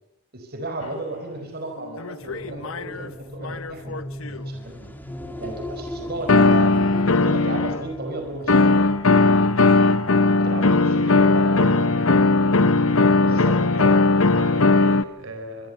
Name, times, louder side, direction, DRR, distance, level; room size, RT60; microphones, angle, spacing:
voice 1, 0.3-4.9 5.4-6.7 7.2-8.6 10.4-11.9 13.2-14.0, right 2 dB, 50° right, 4 dB, 5.0 m, -34 dB
sound 1, 0.8-0.9 2.0-3.1 3.4-4.4 6.3-7.8 8.5-15.0, left 3 dB, 75° left, 1.1 m, -18 dB
sound 2, 2.2-9.5, left 1 dB, 10° left, 2.4 m, -37 dB
voice 2, 5.9-6.4 10.2-12.1 13.1-15.7, right 1 dB, 70° right, 6 dB, 5.3 m, -40 dB
26.0 x 24.0 x 6.9 m, 0.76 s
head